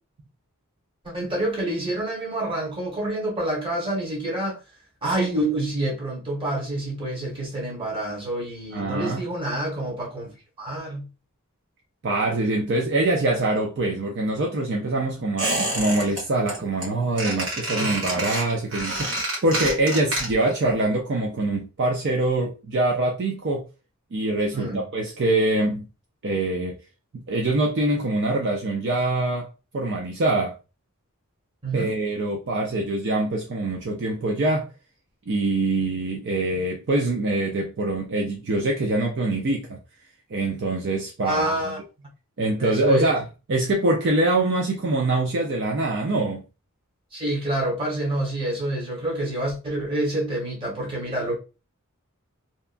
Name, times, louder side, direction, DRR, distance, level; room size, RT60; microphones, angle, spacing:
voice 1, 1.0-4.6 5.0-11.1 17.8-18.1 24.5-24.8 31.6-31.9 41.2-41.8 42.6-43.1 47.1-51.4, right 1 dB, 25° right, 1.1 m, -27 dB
voice 2, 8.7-9.2 12.0-23.6 24.1-25.8 26.2-26.8 27.3-29.5 29.7-30.5 31.7-34.7 35.3-39.8 40.3-41.5 42.4-43.2 43.5-46.4, right 2 dB, 50° right, 0.4 m, -24 dB
Squeak, 15.4-16.2 16.5-16.9 17.2-20.6 20.8-20.9, right 1 dB, 65° right, 1.3 m, -28 dB
2.8 x 2.2 x 2.5 m
head